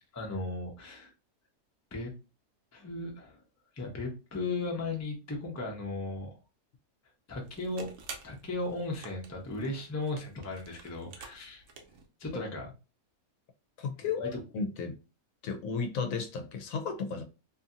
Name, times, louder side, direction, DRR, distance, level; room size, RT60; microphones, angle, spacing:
voice 1, 0.1-1.1 1.9-2.1 2.7-3.4 3.8-6.3 7.3-7.9 8.2-11.6 12.2-12.7 14.2-14.4, left 2 dB, 25° left, 0.3 m, -36 dB
sound 1, 7.4-12.1, right 4 dB, 65° right, 0.9 m, -50 dB
voice 2, 13.8-14.9 15.4-17.2, left 5 dB, 70° left, 0.9 m, -34 dB
2.7 x 2.7 x 2.4 m
omnidirectional pair, 1.5 m